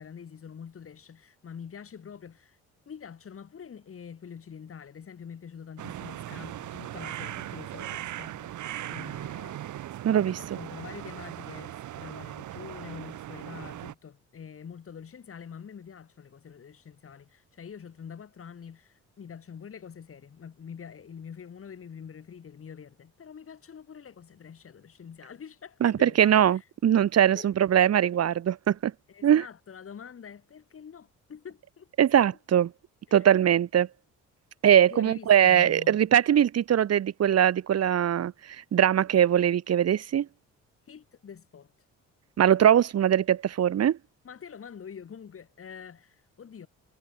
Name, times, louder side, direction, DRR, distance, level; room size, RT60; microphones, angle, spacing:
voice 1, 0.0-2.6 2.9-9.6 10.1-26.7 27.2-27.5 29.1-31.9 33.1-33.3 34.9-36.0 40.9-41.7 44.2-46.7, left 7 dB, 45° left, 5.2 m, -45 dB
sound 1, 5.8-13.9, right 13 dB, 75° right, 2.2 m, -39 dB
voice 2, 25.8-28.9 29.2-29.4 32.0-32.7 33.1-33.9 34.6-40.3 42.4-44.0, right 10 dB, 55° right, 1.5 m, -21 dB
cardioid pair, 90°, 30 cm